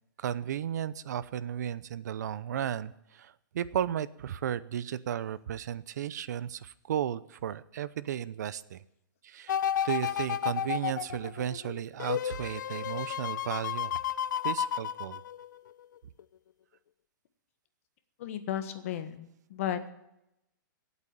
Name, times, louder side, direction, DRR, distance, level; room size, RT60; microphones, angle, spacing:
voice 1, 0.2-8.8 9.2-9.5 9.8-14.0 14.4-15.2, right 10 dB, 55° right, 17 dB, 0.7 m, -34 dB
sound 1, 9.5-15.7 16.2-16.3, left 10 dB, 65° left, 0.6 m, -32 dB
voice 2, 18.2-19.9, left 10 dB, 45° left, 9 dB, 1.6 m, -34 dB
17.5 x 8.4 x 9.0 m, 0.84 s
hypercardioid pair, 165°, 11 cm